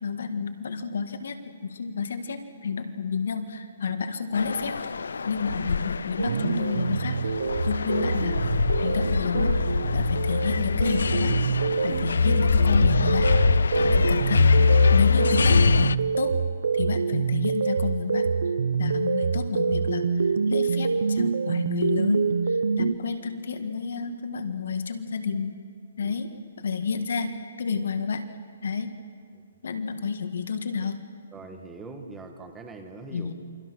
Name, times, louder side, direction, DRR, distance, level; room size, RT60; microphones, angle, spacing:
voice 1, 0.0-1.4 1.6-8.4 8.8-9.6 9.9-11.4 11.8-13.3 13.8-14.5 14.9-16.4 16.7-18.3 18.8-25.6 26.0-28.3 28.6-29.0 29.6-31.1 33.1-33.3, left 5 dB, 60° left, 8 dB, 1.7 m, -30 dB
sound 1, 4.4-16.0, left 5 dB, 90° left, 0.5 m, -23 dB
sound 2, 6.2-23.0, right 5 dB, 80° right, 0.9 m, -26 dB
voice 2, 31.3-33.3, right 3 dB, 5° right, 4 dB, 1.4 m, -43 dB
28.5 x 24.0 x 6.2 m, 2.1 s
hypercardioid pair, 175°, 0 cm